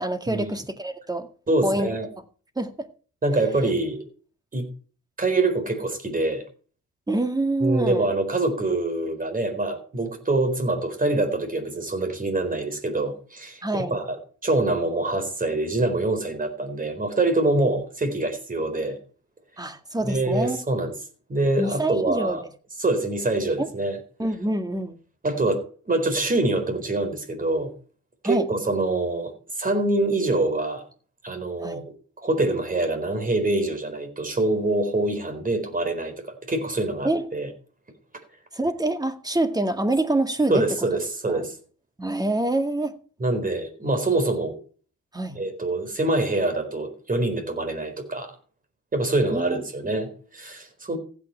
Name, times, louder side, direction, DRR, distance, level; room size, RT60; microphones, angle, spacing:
voice 1, 0.0-1.3 1.6-1.9 2.6-2.9 7.1-8.1 13.6-14.0 19.6-20.6 21.6-22.4 23.6-23.7 24.2-25.0 28.2-28.5 31.6-31.8 37.0-37.3 38.5-40.7 41.3-41.4 42.0-43.0 45.1-45.4 49.3-50.0, right 2 dB, 15° right, 2.0 m, -26 dB
voice 2, 1.5-2.1 3.2-4.0 4.5-4.7 5.2-6.4 7.6-19.0 20.0-20.9 21.3-22.4 22.8-24.0 25.2-27.7 28.2-29.3 29.6-30.8 31.2-31.9 32.2-36.1 36.5-37.5 40.5-41.5 43.2-44.6 45.3-48.3 48.9-51.0, right 2 dB, 30° right, 4.2 m, -25 dB
15.5 x 8.9 x 4.5 m
cardioid pair, 90°, 30 cm